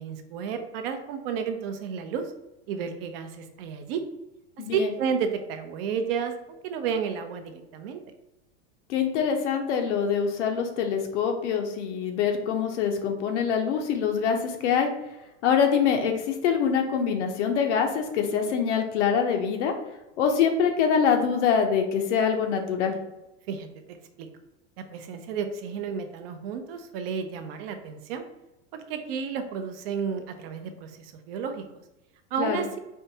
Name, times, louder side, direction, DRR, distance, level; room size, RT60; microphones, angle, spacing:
voice 1, 0.0-2.3 2.7-4.0 4.7-8.0 23.5-23.7 24.2-24.3 24.8-28.3 28.7-31.8 32.3-32.8, right 6 dB, 60° right, 8 dB, 0.5 m, -32 dB
voice 2, 4.6-4.9 8.9-14.9 15.4-19.7 20.2-23.0 32.4-32.6, left 7 dB, 90° left, 4 dB, 0.7 m, -24 dB
4.4 x 2.2 x 2.7 m, 0.96 s
supercardioid pair, 150°, 34 cm